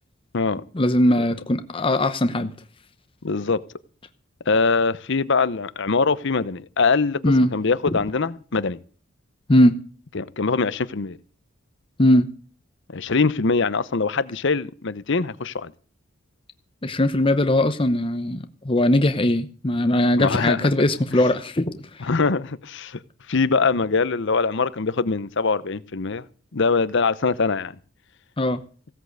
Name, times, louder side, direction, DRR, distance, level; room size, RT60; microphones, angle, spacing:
voice 1, 0.7-2.5 7.2-7.5 7.9-8.0 9.5-9.8 12.0-12.3 16.8-21.8 28.4-28.6, left 1 dB, 25° left, 0.8 m, -20 dB
voice 2, 3.2-3.6 4.5-7.2 7.5-8.8 10.1-11.2 12.9-15.7 20.2-20.7 22.0-23.0 23.3-26.2 26.5-27.7, left 4 dB, 60° left, 0.8 m, -23 dB
16.5 x 8.3 x 7.9 m
head